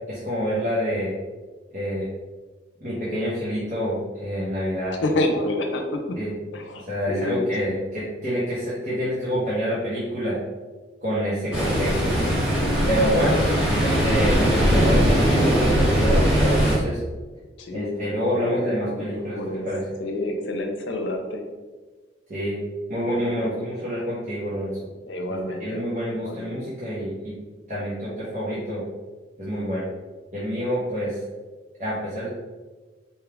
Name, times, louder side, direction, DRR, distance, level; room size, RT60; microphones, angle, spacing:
voice 1, 0.1-1.1 1.7-2.1 2.8-5.0 6.2-6.3 6.9-10.4 11.0-12.4 12.9-13.4 13.8-17.0 17.7-19.8 22.3-22.6 22.9-24.8 25.6-27.3 27.7-28.8 29.4-29.9 30.3-31.2 31.8-32.3, equal, 45° right, -10 dB, 0.9 m, -27 dB
voice 2, 5.0-6.2 6.5-7.8 13.4-13.6 17.6-19.7 20.0-21.4 23.1-23.7 25.0-26.6, left 1 dB, 85° left, 4 dB, 0.6 m, -29 dB
Ocean, 11.5-16.8, equal, 5° right, 0.9 m, -20 dB
4.4 x 2.3 x 3.4 m, 1.3 s
head